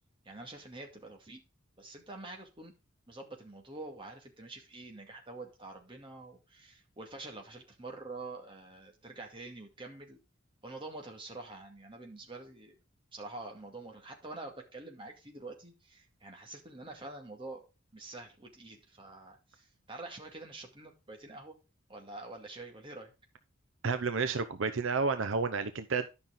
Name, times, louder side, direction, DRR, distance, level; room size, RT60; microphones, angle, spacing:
voice 1, 0.3-1.4 1.8-2.7 3.1-10.2 10.6-12.8 13.1-17.7 17.9-21.6 21.9-23.1, right 2 dB, 25° right, 2.2 m, -46 dB
voice 2, 23.8-26.1, right 4 dB, 70° right, 0.7 m, -31 dB
11.5 x 6.0 x 3.7 m
head